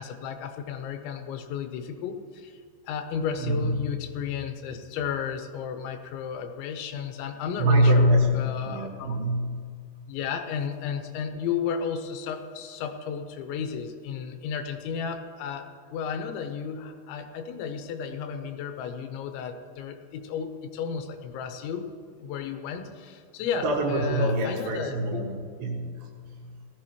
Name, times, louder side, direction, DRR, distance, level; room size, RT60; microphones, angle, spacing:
voice 1, 0.0-9.2 10.1-21.9 22.2-25.3, left 7 dB, 85° left, 6 dB, 3.1 m, -33 dB
voice 2, 3.4-3.9 7.6-9.7 23.6-26.7, equal, 75° right, 0 dB, 3.8 m, -25 dB
18.0 x 13.5 x 3.0 m, 2.1 s
omnidirectional pair, 5.3 m